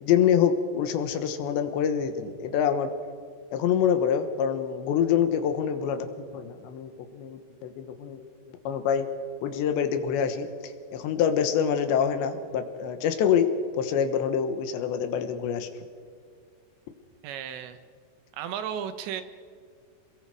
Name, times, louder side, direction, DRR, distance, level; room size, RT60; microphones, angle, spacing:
voice 1, 0.0-2.9 3.5-6.1 6.3-8.3 8.7-9.1 9.4-10.5 10.9-13.5 13.8-15.7, left 8 dB, 80° left, 8 dB, 3.4 m, -25 dB
voice 2, 17.2-17.8 18.3-19.2, right 9 dB, 85° right, 10 dB, 3.3 m, -34 dB
27.5 x 21.5 x 4.8 m, 2.1 s
omnidirectional pair, 5.2 m